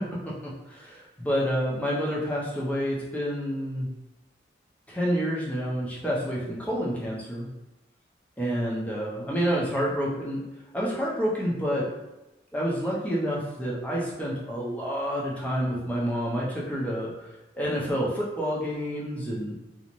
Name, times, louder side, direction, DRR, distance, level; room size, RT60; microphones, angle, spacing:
voice 1, 0.7-3.9 4.9-7.5 8.4-10.4 10.7-11.9 12.5-17.3 17.5-19.5, equal, 10° left, -5 dB, 0.5 m, -28 dB
2.5 x 2.0 x 2.9 m, 1.0 s
head